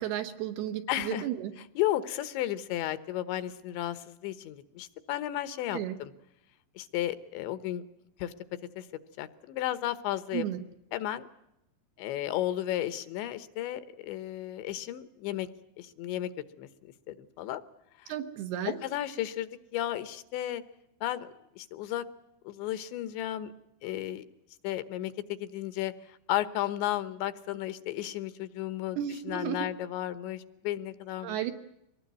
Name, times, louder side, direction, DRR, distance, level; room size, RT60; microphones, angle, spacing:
voice 1, 0.0-1.5 5.7-6.0 10.3-10.6 18.1-18.8 29.0-29.7 31.2-31.5, right 11 dB, 70° right, 7 dB, 2.7 m, -33 dB
voice 2, 0.9-1.3 1.6-6.1 6.8-7.8 8.2-8.3 8.8-8.9 9.2-10.5 10.9-11.3 12.0-15.5 15.8-16.3 16.6-16.7 17.1-17.6 18.0-18.1 18.7-20.6 21.0-22.0 22.4-23.5 23.8-24.2 24.6-31.5, left 13 dB, 75° left, 13 dB, 3.1 m, -34 dB
24.5 x 19.5 x 9.4 m, 0.85 s
omnidirectional pair, 5.5 m